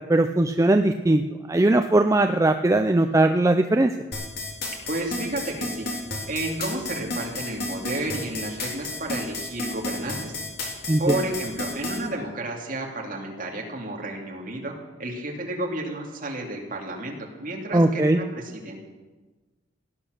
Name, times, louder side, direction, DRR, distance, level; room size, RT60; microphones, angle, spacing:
voice 1, 0.1-1.2 1.5-3.9 10.9-11.2 17.7-18.2, right 2 dB, 15° right, 6 dB, 0.4 m, -19 dB
sound 1, 4.1-12.0, left 2 dB, 55° left, 3.5 m, -31 dB
voice 2, 4.9-5.9 6.3-10.4 11.0-14.7 15.0-18.8, right 1 dB, 45° right, 0 dB, 2.7 m, -31 dB
18.0 x 10.0 x 6.5 m, 1.3 s
head